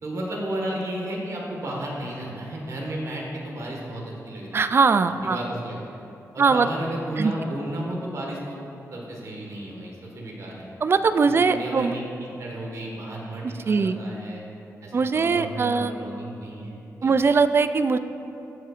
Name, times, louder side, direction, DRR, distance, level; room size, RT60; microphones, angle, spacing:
voice 1, 0.0-4.7 5.2-5.8 6.3-8.6 8.9-10.7 11.2-14.4 14.8-17.1, right 1 dB, 55° right, -2 dB, 1.6 m, -33 dB
voice 2, 4.5-5.4 6.4-6.7 7.2-7.3 10.8-11.9 13.4-14.0 14.9-15.9 17.0-18.0, right 4 dB, 40° right, 11 dB, 0.3 m, -21 dB
14.0 x 5.6 x 2.5 m, 2.9 s
cardioid pair, 100°, 6 cm